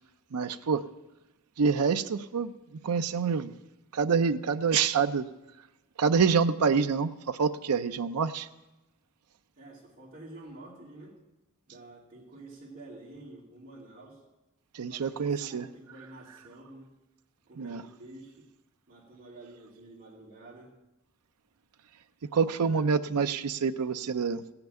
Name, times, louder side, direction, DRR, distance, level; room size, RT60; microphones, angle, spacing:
voice 1, 0.3-0.8 1.6-2.5 2.8-3.5 3.9-5.3 6.0-8.5 14.7-15.7 17.6-17.8 22.3-24.5, right 5 dB, 90° right, 10 dB, 0.5 m, -26 dB
voice 2, 9.6-11.2 11.7-14.2 14.9-16.9 17.5-18.5 18.9-20.8 22.3-22.9, right 2 dB, 40° right, -8 dB, 2.7 m, -49 dB
16.5 x 5.9 x 8.9 m, 1.0 s
head